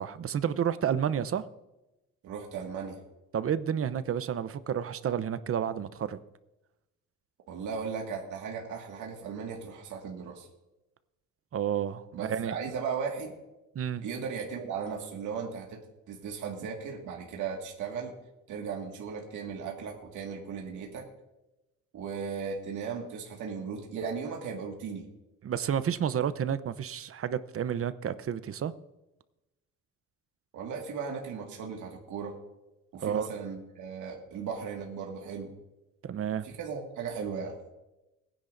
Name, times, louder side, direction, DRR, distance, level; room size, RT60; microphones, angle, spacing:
voice 1, 0.0-1.4 3.3-6.2 11.5-12.5 13.7-14.0 25.4-28.7 33.0-33.3 36.0-36.5, right 8 dB, 50° right, 14 dB, 0.8 m, -30 dB
voice 2, 2.2-3.0 7.5-10.5 12.1-13.3 14.0-15.8 16.1-18.1 18.5-21.0 21.9-25.1 30.5-32.3 32.9-35.5 36.4-37.6, right 6 dB, 80° right, 0 dB, 2.0 m, -37 dB
21.0 x 10.0 x 2.6 m, 0.97 s
cardioid pair, 90°, 30 cm